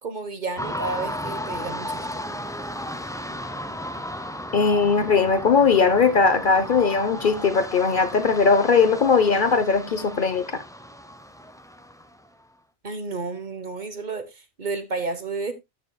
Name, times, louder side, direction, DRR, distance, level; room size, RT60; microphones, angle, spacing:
voice 1, 0.0-2.1 12.8-15.5, right 3 dB, 45° right, 1.2 m, -31 dB
sound 1, 0.6-12.3, equal, 5° left, 0.7 m, -34 dB
voice 2, 4.5-10.4, left 5 dB, 50° left, 1.0 m, -19 dB
13.5 x 6.8 x 2.3 m
omnidirectional pair, 1.1 m